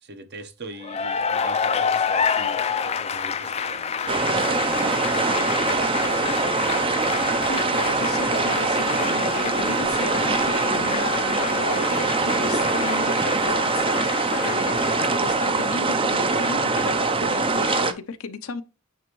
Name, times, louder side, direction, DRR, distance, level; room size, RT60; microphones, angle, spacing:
voice 1, 0.0-6.8, right 2 dB, 50° right, 0.9 m, -43 dB
Cheering / Applause, 0.8-15.7, left 6 dB, 30° left, 0.4 m, -29 dB
sound 1, 4.1-17.9, right 3 dB, 25° right, 0.5 m, -23 dB
voice 2, 7.2-18.6, left 5 dB, 80° left, 0.7 m, -34 dB
8.9 x 3.5 x 3.0 m
head